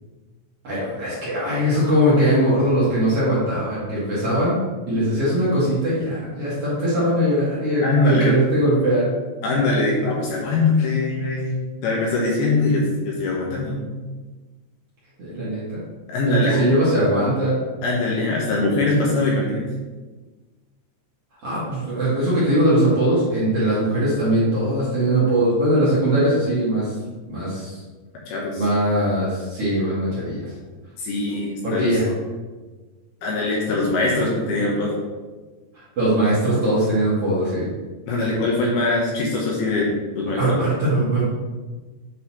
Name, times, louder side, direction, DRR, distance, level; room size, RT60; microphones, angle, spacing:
voice 1, 0.6-4.6 4.9-9.1 15.2-15.8 16.3-17.5 21.4-26.9 27.3-27.8 28.6-30.5 31.6-32.1 35.7-37.7 40.4-41.2, right 1 dB, 45° right, -9 dB, 2.2 m, -21 dB
voice 2, 7.8-8.3 9.4-11.6 11.8-13.8 16.1-16.6 17.8-19.7 28.3-28.6 31.0-32.0 33.2-35.0 38.1-40.6, left 2 dB, 70° left, -3 dB, 2.6 m, -22 dB
8.4 x 4.1 x 4.3 m, 1.3 s
omnidirectional pair, 5.3 m